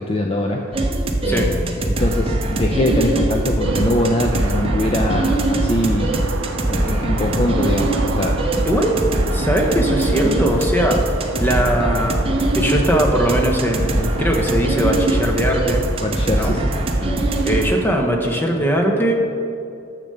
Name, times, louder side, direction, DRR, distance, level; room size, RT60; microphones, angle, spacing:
voice 1, 0.0-6.3 6.7-8.4 16.0-16.7, left 1 dB, 25° left, 2 dB, 0.5 m, -22 dB
sound 1, 0.7-17.7, right 1 dB, 25° right, 0.7 m, -21 dB
sound 2, 3.6-17.9, right 3 dB, 75° right, 0.6 m, -32 dB
voice 2, 8.6-8.9 9.3-12.2 12.5-15.8 16.3-16.6 17.4-19.2, equal, 10° left, 1 dB, 0.8 m, -20 dB
6.9 x 6.7 x 6.6 m, 2.5 s
head